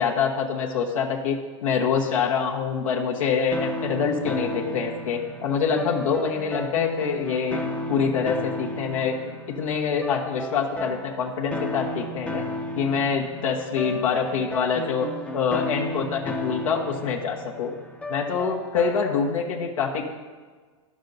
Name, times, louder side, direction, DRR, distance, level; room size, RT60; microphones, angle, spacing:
voice 1, 0.0-1.4 1.6-7.6 7.9-9.2 9.6-12.4 12.8-15.1 15.3-17.7 18.1-20.0, left 6 dB, 80° left, -1 dB, 1.1 m, -25 dB
sound 1, 3.5-19.4, left 1 dB, 10° left, 0.6 m, -34 dB
10.5 x 6.3 x 4.0 m, 1.4 s
hypercardioid pair, 110°, 17 cm